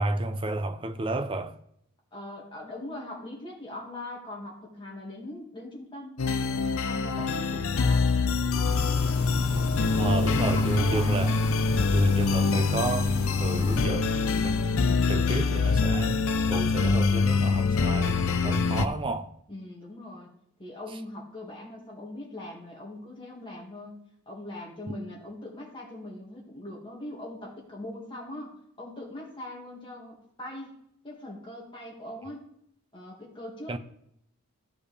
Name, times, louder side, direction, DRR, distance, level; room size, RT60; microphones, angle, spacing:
voice 1, 0.0-1.6 10.0-11.4 11.9-14.7 15.1-19.3 33.7-33.8, right 2 dB, 25° right, 0.5 m, -30 dB
voice 2, 2.1-6.2 6.7-8.1 9.3-9.9 10.2-11.3 19.5-20.3 20.6-24.0 24.3-30.8 31.0-32.5 32.9-33.8, left 1 dB, 20° left, 2.0 m, -41 dB
sound 1, 6.2-18.9, left 4 dB, 65° left, 0.5 m, -25 dB
sound 2, 8.6-13.9, left 1 dB, 80° left, 1.6 m, -34 dB
14.0 x 5.1 x 3.3 m
head